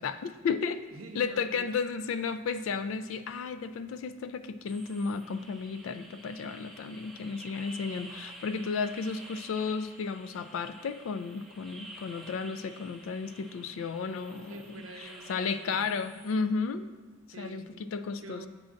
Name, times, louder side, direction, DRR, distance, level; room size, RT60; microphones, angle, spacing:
voice 1, 0.0-0.8 1.2-14.6 15.3-16.9 17.4-18.4, left 5 dB, 65° left, 12 dB, 0.3 m, -33 dB
voice 2, 0.9-1.7 14.0-15.9 17.3-17.7 18.2-18.5, right 3 dB, 65° right, 6 dB, 0.5 m, -47 dB
sound 1, 4.7-16.3, right 1 dB, ahead, 0.5 m, -50 dB
8.4 x 6.2 x 2.5 m, 1.4 s
head